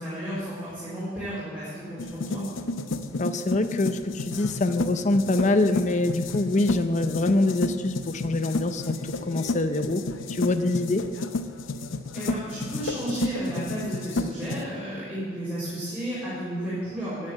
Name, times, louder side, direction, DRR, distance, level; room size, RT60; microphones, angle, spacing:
voice 1, 0.0-2.4 12.1-17.3, equal, 10° right, -12 dB, 4.0 m, -32 dB
sound 1, 2.0-14.6, left 2 dB, 80° left, 0.7 m, -32 dB
voice 2, 3.2-10.0 10.3-11.0, left 2 dB, 35° left, 9 dB, 0.6 m, -25 dB
10.0 x 9.9 x 7.9 m, 2.4 s
head